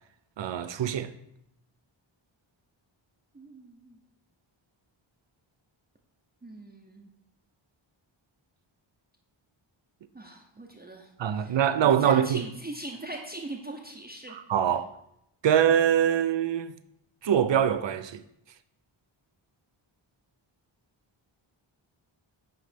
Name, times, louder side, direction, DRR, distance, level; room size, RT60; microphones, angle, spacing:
voice 1, 0.4-1.1 11.2-12.4 14.3-14.9 15.4-16.7 17.2-18.2, right 9 dB, 65° right, 0.6 m, -24 dB
voice 2, 3.3-4.0 6.4-7.1 10.1-11.6 12.0-14.4, right 1 dB, 20° right, 0.7 m, -41 dB
9.5 x 3.2 x 5.1 m
wide cardioid pair, 75°, 49 cm